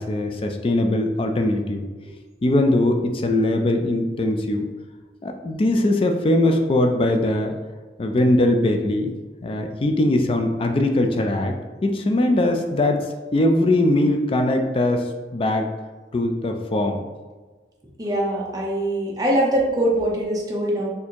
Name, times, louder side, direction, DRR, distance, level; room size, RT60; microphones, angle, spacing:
voice 1, 0.0-1.8 2.4-4.7 5.2-7.5 8.0-9.1 9.4-11.5 11.8-13.0 13.3-15.7 16.1-17.0, left 1 dB, 30° left, 4 dB, 0.3 m, -21 dB
voice 2, 18.0-20.9, right 1 dB, 20° right, -3 dB, 0.7 m, -22 dB
4.2 x 2.6 x 2.9 m, 1.3 s
head